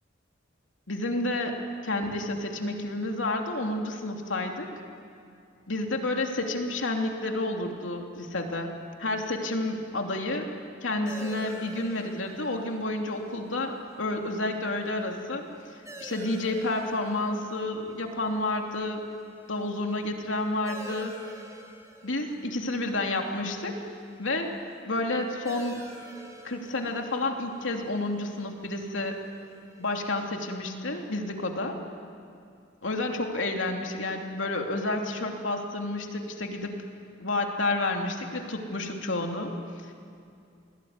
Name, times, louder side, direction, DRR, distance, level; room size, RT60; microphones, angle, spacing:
voice 1, 0.9-4.7 5.7-8.7 9.0-10.5 10.8-15.5 16.0-19.0 19.5-21.2 22.0-23.8 24.2-25.9 26.4-29.2 29.8-31.8 32.8-36.7 37.2-39.5, left 2 dB, 80° left, 2 dB, 3.0 m, -30 dB
sound 1, 11.1-30.2, right 1 dB, 15° right, 3.7 m, -49 dB
28.5 x 20.5 x 9.7 m, 2.5 s
head